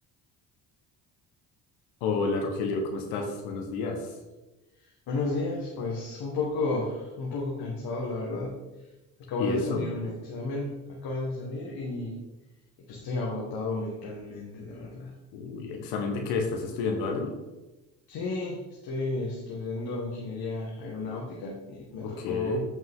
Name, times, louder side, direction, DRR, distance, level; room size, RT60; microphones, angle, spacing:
voice 1, 2.0-4.1 9.4-9.8 15.3-17.3 22.0-22.6, left 4 dB, 85° left, 3 dB, 1.3 m, -30 dB
voice 2, 5.1-8.5 9.3-12.2 12.9-15.1 18.1-22.6, left 3 dB, 70° left, -3 dB, 1.7 m, -32 dB
8.2 x 5.5 x 3.7 m, 1.1 s
supercardioid pair, 75°, 39 cm